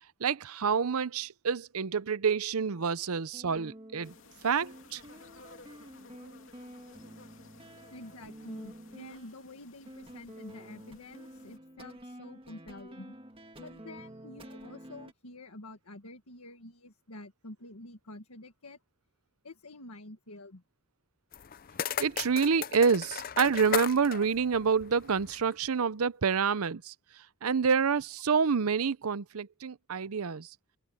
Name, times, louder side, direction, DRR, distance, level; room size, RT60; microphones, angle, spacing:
voice 1, 0.2-4.1 4.4-5.0 22.0-26.9 27.4-30.5, right 6 dB, 85° right, 0.7 m, -28 dB
sound 1, 3.1-15.1, right 1 dB, 25° right, 1.8 m, -49 dB
sound 2, 4.0-11.6, left 3 dB, 65° left, 3.1 m, -56 dB
voice 2, 7.9-13.1 13.6-18.8 19.4-20.6, left 1 dB, 90° left, 1.8 m, -48 dB
sound 3, 21.3-25.5, left 8 dB, 40° left, 0.5 m, -37 dB
head